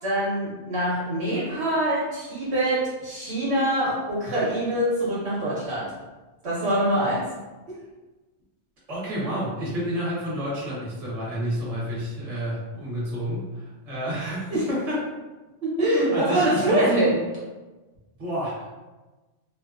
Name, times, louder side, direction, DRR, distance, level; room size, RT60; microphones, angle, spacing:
voice 1, 0.0-5.9 6.4-7.3 7.7-7.8 14.5-14.7 15.6-17.2, right 1 dB, 65° right, -8 dB, 1.0 m, -24 dB
voice 2, 8.9-15.0 15.8-17.0 18.2-18.7, equal, 35° right, -8 dB, 0.9 m, -30 dB
2.7 x 2.1 x 2.3 m, 1.2 s
omnidirectional pair, 1.2 m